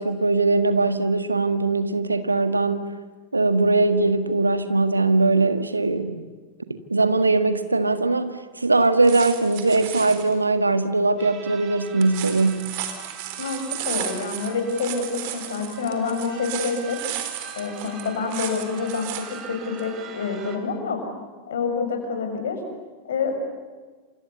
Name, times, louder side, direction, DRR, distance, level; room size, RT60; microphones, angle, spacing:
voice 1, 0.0-2.9 3.3-6.2 6.7-12.7, right 3 dB, 80° right, 10 dB, 1.7 m, -21 dB
sound 1, 8.8-10.3 11.9-19.4 19.8-19.9, right 11 dB, 50° right, 3.8 m, -34 dB
sound 2, 11.2-20.6, right 8 dB, 30° right, 4.0 m, -42 dB
voice 2, 13.4-17.0 17.5-21.0 21.5-22.6 23.0-23.3, left 4 dB, 60° left, 5 dB, 6.7 m, -27 dB
29.5 x 27.5 x 7.2 m, 1.4 s
figure-of-eight pair, 90°, 0 cm